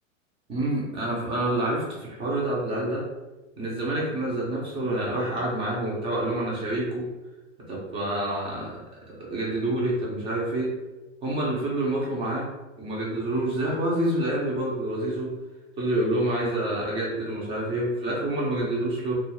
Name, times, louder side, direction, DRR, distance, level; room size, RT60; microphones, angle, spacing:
voice 1, 0.5-3.1 3.6-7.1 7.7-8.8 9.1-10.7 11.2-12.5 12.8-15.3 15.8-19.2, right 1 dB, 15° right, -4 dB, 0.5 m, -27 dB
2.4 x 2.3 x 2.9 m, 1.1 s
hypercardioid pair, 140°, 40 cm